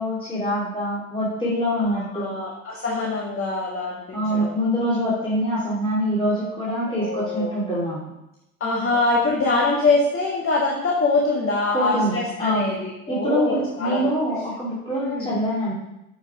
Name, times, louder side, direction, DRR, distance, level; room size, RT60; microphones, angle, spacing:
voice 1, 0.0-2.4 4.1-8.0 11.7-12.7 13.1-15.7, equal, 10° left, -8 dB, 2.9 m, -25 dB
voice 2, 1.8-4.5 6.9-7.6 8.6-14.1 15.0-15.3, left 3 dB, 30° left, -2 dB, 1.8 m, -24 dB
7.8 x 5.6 x 4.9 m, 0.91 s
hypercardioid pair, 85°, 43 cm